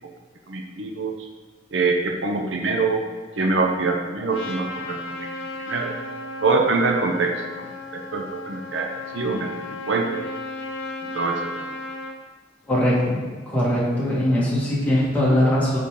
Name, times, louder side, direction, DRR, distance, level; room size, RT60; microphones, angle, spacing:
voice 1, 0.5-1.1 1.7-3.0 3.4-5.3 5.7-5.9 6.4-7.4 8.1-8.9 9.1-10.3 11.1-11.6, right 3 dB, 70° right, 2 dB, 0.7 m, -24 dB
Trumpet, 4.3-12.2, left 2 dB, 90° left, 0.8 m, -35 dB
voice 2, 12.7-13.2 13.5-15.8, left 1 dB, 10° left, -8 dB, 2.1 m, -21 dB
8.3 x 4.6 x 3.8 m, 1.4 s
head